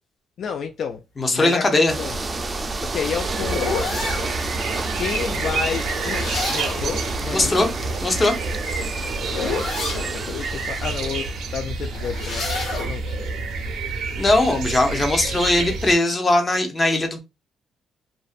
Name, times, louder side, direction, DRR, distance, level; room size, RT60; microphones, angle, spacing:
voice 1, 0.4-1.0 1.3-2.2 2.8-3.9 5.0-6.2 6.5-7.7 9.3-13.3, left 7 dB, 65° left, 0.3 m, -31 dB
voice 2, 1.2-1.9 6.4-6.5 7.3-7.7 8.0-8.4 14.2-17.2, left 2 dB, 30° left, 0.7 m, -20 dB
sound 1, 1.9-11.6, right 3 dB, 25° right, 0.4 m, -30 dB
sound 2, 2.5-4.3 5.8-6.9 8.4-10.1 11.8-12.9, left 3 dB, 80° left, 1.4 m, -29 dB
sound 3, 3.1-16.0, right 4 dB, 80° right, 0.5 m, -29 dB
2.5 x 2.1 x 2.4 m
cardioid pair, 90°, 0 cm